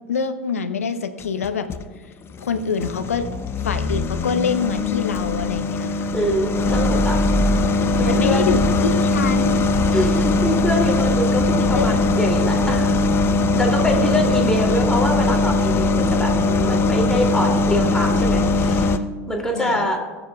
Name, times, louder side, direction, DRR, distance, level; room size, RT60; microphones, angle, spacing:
voice 1, 0.1-1.7 2.4-3.3 3.6-6.1 6.7-6.9 7.7-9.6 11.7-12.0 13.9-14.2 19.5-19.9, left 5 dB, 85° left, 9 dB, 0.9 m, -25 dB
sound 1, 1.2-1.8 2.4-19.0, left 2 dB, 30° left, 0.7 m, -20 dB
voice 2, 6.1-7.2 7.9-8.5 9.9-13.2 13.5-19.0 19.3-20.0, left 1 dB, 10° left, 0 dB, 2.8 m, -24 dB
21.5 x 7.2 x 2.4 m, 1.3 s
hypercardioid pair, 85°, 8 cm